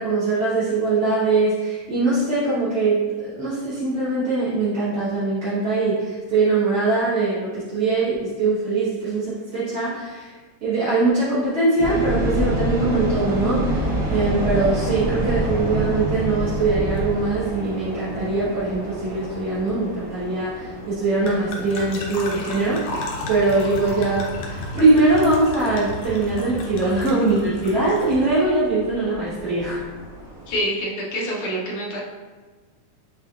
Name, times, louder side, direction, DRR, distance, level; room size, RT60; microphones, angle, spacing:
voice 1, 0.0-10.3 10.6-29.8, right 3 dB, 65° right, -12 dB, 0.7 m, -22 dB
sound 1, 11.8-30.6, right 1 dB, 40° right, 1.2 m, -29 dB
sound 2, 16.1-28.4, left 2 dB, 85° left, 1.3 m, -35 dB
voice 2, 30.5-32.0, equal, 70° left, -4 dB, 1.5 m, -26 dB
7.4 x 2.7 x 2.4 m, 1.4 s
omnidirectional pair, 3.6 m